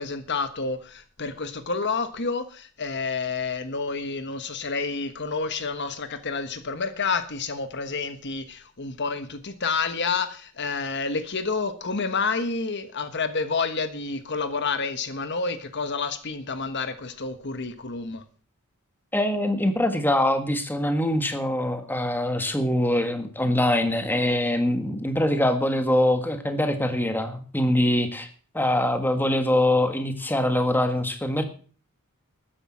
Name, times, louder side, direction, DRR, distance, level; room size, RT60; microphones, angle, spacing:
voice 1, 0.0-18.2, left 4 dB, 50° left, 10 dB, 1.3 m, -29 dB
voice 2, 19.1-28.3 28.5-31.5, left 1 dB, 10° left, 7 dB, 1.6 m, -23 dB
13.0 x 10.0 x 6.2 m, 0.41 s
head